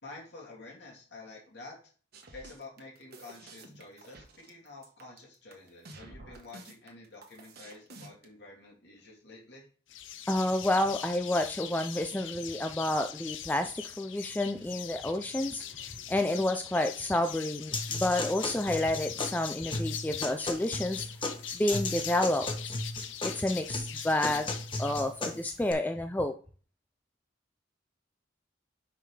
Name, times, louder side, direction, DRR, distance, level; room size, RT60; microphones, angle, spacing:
voice 1, 0.0-1.9 2.3-9.7, left 3 dB, 60° left, -1 dB, 2.8 m, -49 dB
sound 1, 2.1-8.3, right 2 dB, 55° right, 1.3 m, -50 dB
sound 2, 9.9-25.0, left 11 dB, 80° left, 0.6 m, -42 dB
voice 2, 10.3-15.6 16.1-21.1 21.5-22.7 23.2-24.5 24.8-26.3, left 1 dB, 10° left, 6 dB, 0.4 m, -30 dB
sound 3, 17.7-25.7, left 2 dB, 25° left, 1.1 m, -35 dB
5.7 x 5.7 x 4.8 m, 0.41 s
head